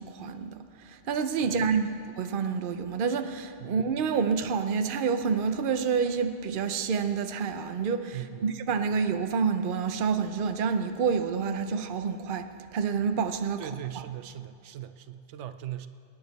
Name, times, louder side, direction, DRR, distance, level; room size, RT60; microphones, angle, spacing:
voice 1, 0.0-1.9 2.2-13.6, right 6 dB, 55° right, 0.8 m, -28 dB
voice 2, 1.4-1.7 3.6-3.8 8.1-8.6 13.6-15.9, right 12 dB, 85° right, 0.9 m, -40 dB
24.5 x 9.9 x 4.1 m
omnidirectional pair, 1.2 m